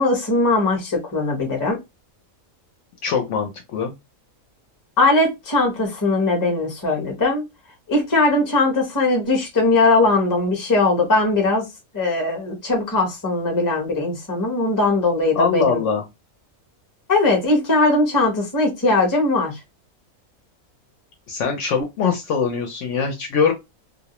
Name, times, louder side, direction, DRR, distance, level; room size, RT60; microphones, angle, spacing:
voice 1, 0.0-1.8 5.0-7.4 7.9-11.6 11.9-15.8 17.1-19.5, left 2 dB, 20° left, 0.6 m, -19 dB
voice 2, 3.0-3.9 15.3-16.0 21.3-23.5, left 6 dB, 70° left, 0.8 m, -22 dB
2.3 x 2.0 x 2.9 m
omnidirectional pair, 1.5 m